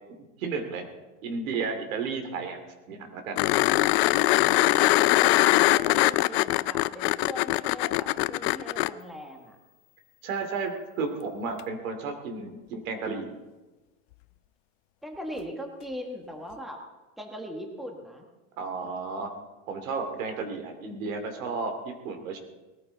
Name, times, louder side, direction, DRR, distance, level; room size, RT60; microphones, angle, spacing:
voice 1, 0.1-0.9 1.2-2.6 2.9-3.4 10.2-10.7 11.0-13.3 18.6-19.3 19.7-22.4, right 4 dB, 80° right, 6 dB, 2.7 m, -33 dB
sound 1, 3.4-8.9 11.6-11.7, left 18 dB, 55° left, 0.5 m, -22 dB
voice 2, 4.4-9.6 15.0-16.8 17.2-18.3, equal, ahead, 3 dB, 1.4 m, -40 dB
19.5 x 14.0 x 3.9 m, 1.1 s
supercardioid pair, 150°, 40 cm